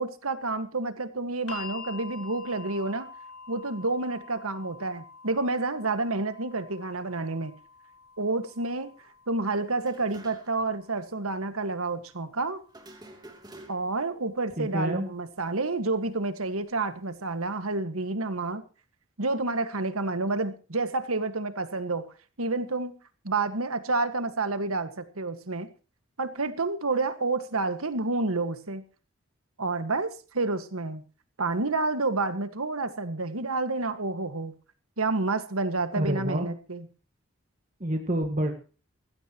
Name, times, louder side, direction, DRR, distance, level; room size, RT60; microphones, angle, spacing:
voice 1, 0.0-3.1 3.5-7.5 8.2-8.9 9.3-12.6 13.7-18.6 19.2-22.1 22.4-22.9 23.2-25.7 26.2-28.8 29.6-31.0 31.4-34.5 35.0-36.9, right 3 dB, 90° right, 10 dB, 1.7 m, -29 dB
sound 1, 1.5-13.6 14.6-14.7, left 5 dB, 90° left, 4.2 m, -48 dB
sound 2, 9.8-10.7 11.0-11.1 12.7-14.1, right 1 dB, 20° right, 2.8 m, -49 dB
voice 2, 14.6-15.1 35.9-36.5 37.8-38.6, right 1 dB, 35° right, 4 dB, 1.8 m, -28 dB
20.0 x 16.0 x 3.0 m, 0.37 s
head